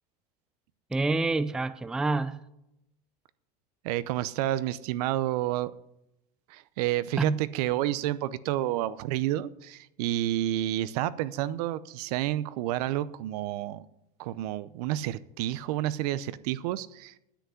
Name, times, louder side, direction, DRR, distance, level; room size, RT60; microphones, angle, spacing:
voice 1, 0.9-2.4 7.2-7.4, right 2 dB, 5° right, 0.4 m, -27 dB
voice 2, 3.8-5.7 6.5-13.8 14.2-17.2, right 14 dB, 70° right, 0.7 m, -30 dB
10.0 x 8.2 x 9.4 m
supercardioid pair, 140°, 20 cm